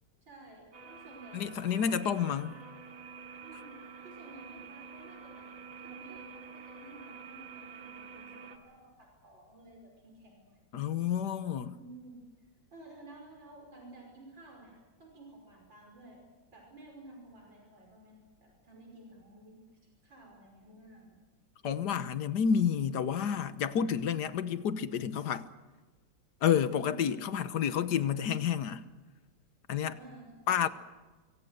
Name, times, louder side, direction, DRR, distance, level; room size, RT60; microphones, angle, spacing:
voice 1, 0.2-2.2 3.4-5.5 5.8-10.8 11.7-12.2 12.7-16.2 16.5-19.6 20.0-21.2 26.6-27.1 29.8-30.7, right 2 dB, 85° right, 6.2 m, -53 dB
sound 1, 0.7-8.6, right 5 dB, 45° right, 2.8 m, -48 dB
voice 2, 1.3-2.5 10.7-11.7 21.6-25.5 26.4-28.8 29.7-30.0 30.5-30.7, left 8 dB, 65° left, 1.6 m, -30 dB
26.0 x 23.5 x 6.6 m
omnidirectional pair, 2.0 m